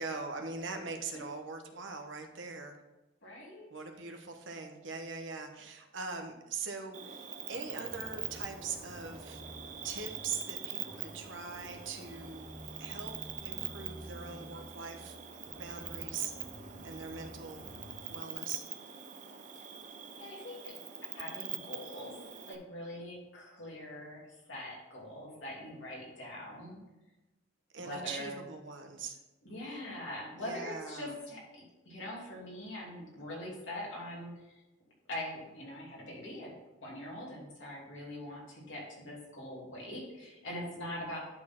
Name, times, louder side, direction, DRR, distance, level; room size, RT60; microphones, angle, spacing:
voice 1, 0.0-2.8 3.7-9.4 9.8-12.5 12.8-13.2 13.4-15.2 15.6-16.3 16.8-17.6 18.1-18.6 27.7-29.2 30.3-31.2, right 4 dB, 80° right, 5 dB, 1.0 m, -42 dB
voice 2, 3.2-3.7 20.2-20.7 21.1-22.1 22.5-24.2 24.5-26.8 27.8-28.3 29.4-34.6 35.1-36.5 36.8-41.2, left 1 dB, 75° left, -3 dB, 2.8 m, -43 dB
Cricket, 6.9-22.5, right 9 dB, 40° right, 0.7 m, -44 dB
sound 1, 7.5-18.1, equal, 5° right, 1.0 m, -51 dB
11.0 x 4.3 x 4.4 m, 1.1 s
head